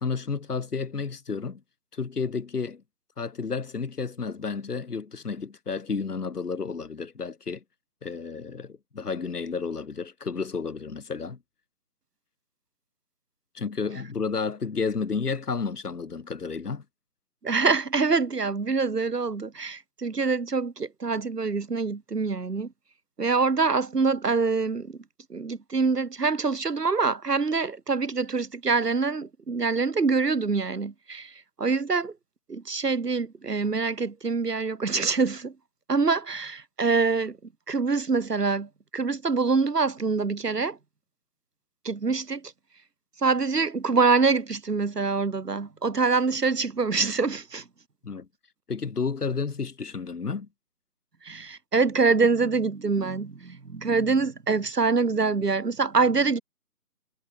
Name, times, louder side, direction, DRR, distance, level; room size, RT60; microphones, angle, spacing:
voice 1, 0.0-1.6 1.9-2.8 3.2-7.6 8.0-11.4 13.6-16.8 48.0-48.3 48.7-50.5, left 5 dB, 80° left, 1.7 m, -31 dB
voice 2, 17.4-22.7 23.2-25.0 25.3-32.1 32.5-35.5 35.9-37.4 37.7-40.8 41.8-42.5 43.2-47.6 51.2-56.4, right 4 dB, 85° right, 2.2 m, -25 dB
figure-of-eight pair, 170°, 46 cm